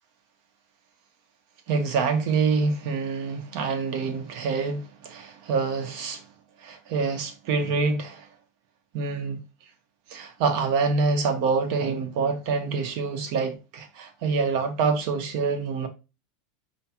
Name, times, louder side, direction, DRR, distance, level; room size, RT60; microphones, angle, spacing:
voice 1, 1.7-6.2 6.6-8.3 8.9-9.4 10.1-15.9, right 4 dB, 50° right, 1.1 m, -26 dB
5.8 x 3.1 x 2.9 m
supercardioid pair, 170°, 0 cm